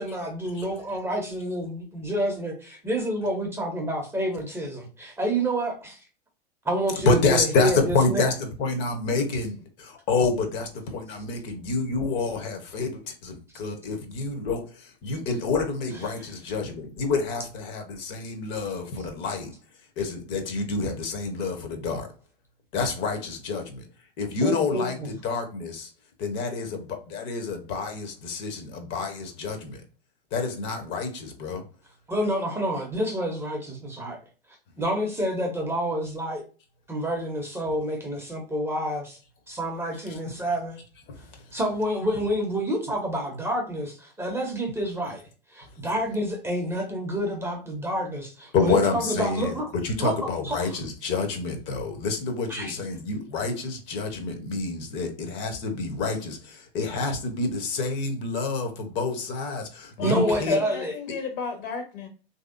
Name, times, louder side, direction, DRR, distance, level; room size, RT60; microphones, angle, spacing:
voice 1, 0.0-6.0 6.6-8.3 24.4-25.1 32.1-34.2 34.8-36.4 36.9-39.2 39.5-40.8 41.5-45.2 45.5-49.7 50.0-50.1 50.4-50.8 52.4-52.7 60.0-60.9, right 1 dB, 10° right, 0.7 m, -28 dB
voice 2, 7.0-19.5 20.0-22.1 22.7-23.9 24.2-25.9 26.2-29.8 30.3-31.6 40.1-40.2 41.1-41.2 48.5-49.5 49.8-60.6, left 4 dB, 35° left, 0.8 m, -28 dB
voice 3, 60.0-62.1, left 6 dB, 55° left, 1.1 m, -33 dB
3.1 x 2.7 x 2.5 m
figure-of-eight pair, 100°, 30 cm